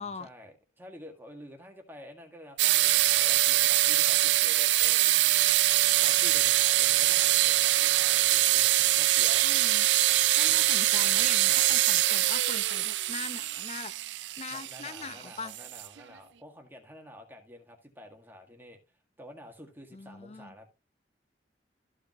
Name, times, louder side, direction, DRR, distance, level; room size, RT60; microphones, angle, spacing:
voice 1, 0.0-5.2 6.0-9.5 10.4-10.7 11.2-11.8 14.5-18.8 19.2-20.7, left 1 dB, 10° right, 1.9 m, -49 dB
sound 1, 2.6-16.0, right 15 dB, 80° right, 0.4 m, -24 dB
voice 2, 9.4-9.9 10.4-15.6 19.9-20.5, left 4 dB, 35° left, 0.7 m, -42 dB
14.0 x 5.1 x 3.1 m
head